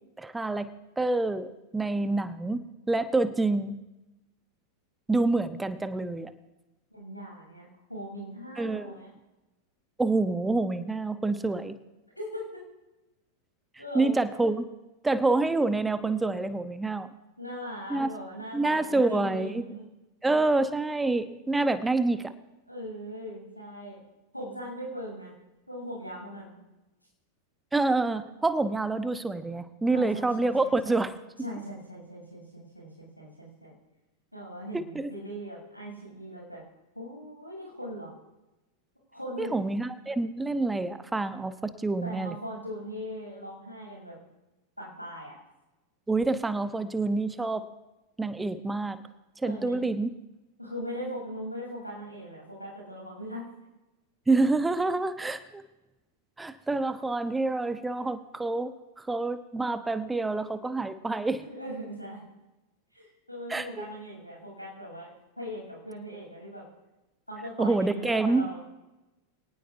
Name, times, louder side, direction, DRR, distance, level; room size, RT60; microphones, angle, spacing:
voice 1, 0.2-0.7 1.0-3.8 5.1-6.3 8.6-8.9 10.0-11.8 13.9-14.6 15.0-17.1 17.9-18.1 18.5-19.6 20.2-22.3 27.7-31.1 34.7-35.1 39.4-42.3 46.1-47.7 48.2-49.0 49.4-50.1 54.3-55.6 56.4-61.4 63.5-63.9 67.6-68.5, right 3 dB, 10° right, 12 dB, 0.9 m, -27 dB
voice 2, 6.9-9.1 12.2-12.6 13.8-14.2 17.4-19.8 22.7-24.0 24.3-25.3 25.7-26.6 29.9-31.0 31.4-33.7 34.3-36.6 36.9-38.1 39.1-39.6 42.0-44.2 44.8-45.4 49.4-49.8 50.6-53.5 61.4-62.3 62.9-65.1 65.4-66.6 67.3-68.7, equal, 90° left, -2 dB, 7.5 m, -40 dB
24.0 x 18.5 x 2.7 m, 1.0 s
figure-of-eight pair, 90°, 0 cm